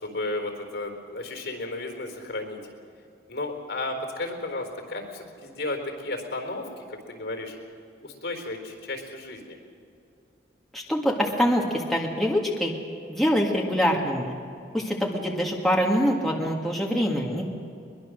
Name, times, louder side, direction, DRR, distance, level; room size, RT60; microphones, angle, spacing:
voice 1, 0.0-2.6 3.3-7.5 8.0-9.6, left 2 dB, 75° left, 3 dB, 4.1 m, -33 dB
voice 2, 10.7-12.7 13.1-14.3 14.7-17.4, equal, ahead, -2 dB, 1.9 m, -24 dB
22.5 x 22.0 x 6.5 m, 2.6 s
head